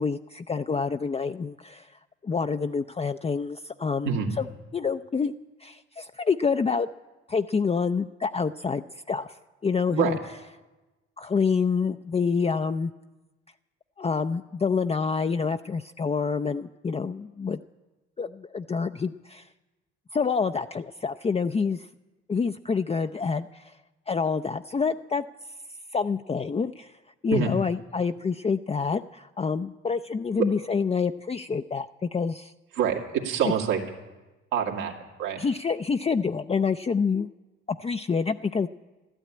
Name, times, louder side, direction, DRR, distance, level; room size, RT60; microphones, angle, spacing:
voice 1, 0.0-4.1 4.4-4.5 4.7-5.3 5.6-6.9 7.3-9.3 9.6-10.2 11.2-12.9 14.0-17.6 18.2-19.5 20.1-21.9 22.3-23.7 24.1-25.2 25.9-26.9 27.2-32.5 35.4-37.3 37.7-38.7, left 5 dB, 20° left, 8 dB, 0.5 m, -27 dB
voice 2, 32.7-33.8 34.5-34.9 35.2-35.4, right 8 dB, 80° right, 0 dB, 2.3 m, -25 dB
12.5 x 12.5 x 8.6 m, 1.1 s
hypercardioid pair, 55°, 33 cm